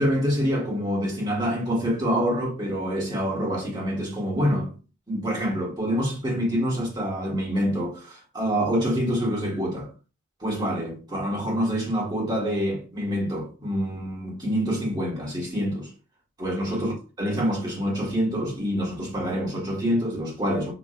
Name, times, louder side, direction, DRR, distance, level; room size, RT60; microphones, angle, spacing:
voice 1, 0.0-4.7 5.1-9.9 10.4-15.9 16.4-20.7, equal, 20° right, 1.8 m, -26 dB
6.1 x 2.8 x 2.5 m
head